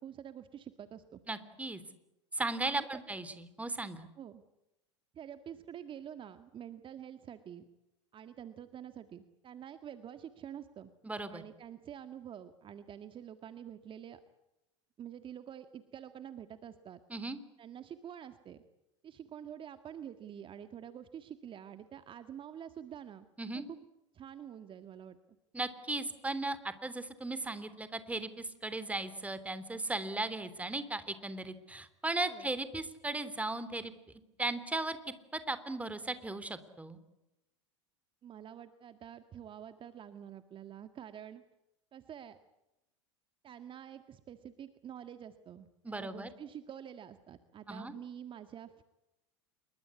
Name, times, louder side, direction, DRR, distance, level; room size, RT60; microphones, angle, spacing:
voice 1, 0.0-1.2 2.7-2.9 4.2-4.4 5.1-7.6 8.1-10.9 11.3-14.2 15.0-17.0 17.6-18.6 19.0-23.3 23.5-23.8 24.1-25.2 32.3-32.5 38.2-41.4 41.9-42.4 43.4-48.8, right 9 dB, 35° right, 10 dB, 1.8 m, -47 dB
voice 2, 1.3-1.8 2.3-4.1 11.0-11.4 17.1-17.4 23.4-23.6 25.5-33.9 34.4-35.0 35.3-37.0 45.8-46.3 47.7-47.9, right 2 dB, 10° right, 13 dB, 3.3 m, -37 dB
28.0 x 23.0 x 8.5 m, 0.92 s
hypercardioid pair, 90°, 15 cm